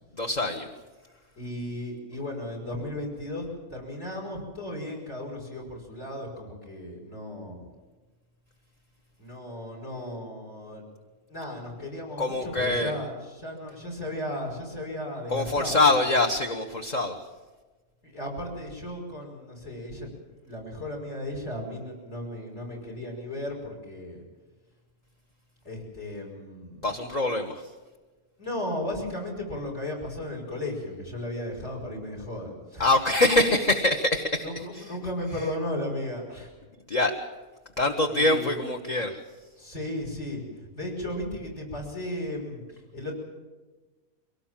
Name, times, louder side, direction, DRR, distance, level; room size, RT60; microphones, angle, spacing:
voice 1, 0.2-0.6 12.2-12.9 15.3-17.1 26.8-27.6 32.8-34.9 36.9-37.1 37.8-39.2, left 2 dB, 30° left, 3 dB, 1.2 m, -24 dB
voice 2, 1.4-3.4 3.7-7.6 9.2-10.8 11.3-15.9 18.0-20.1 20.5-24.2 25.6-26.9 28.4-32.9 34.4-36.5 38.1-38.6 39.6-40.4 40.7-42.6 42.9-43.1, left 1 dB, 50° left, 1 dB, 6.1 m, -35 dB
23.0 x 18.0 x 7.4 m, 1.3 s
omnidirectional pair, 1.5 m